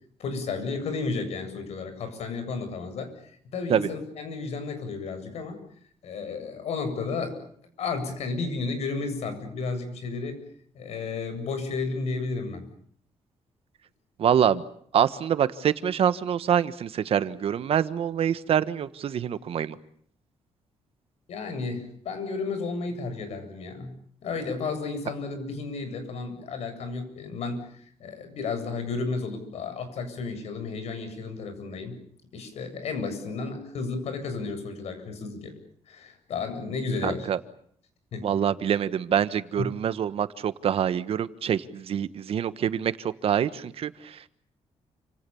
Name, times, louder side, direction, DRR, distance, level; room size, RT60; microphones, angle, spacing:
voice 1, 0.2-3.1 3.5-5.6 6.0-7.4 7.8-10.4 10.7-12.7 21.3-23.9 24.2-31.9 32.3-35.5 35.9-37.3 38.1-38.3 39.6-39.7, left 4 dB, 70° left, 8 dB, 8.0 m, -32 dB
voice 2, 14.2-14.6 14.9-19.7 37.0-37.4 38.2-44.3, right 9 dB, 60° right, 13 dB, 1.4 m, -25 dB
29.5 x 26.5 x 7.2 m, 0.63 s
cardioid pair, 140°, 11 cm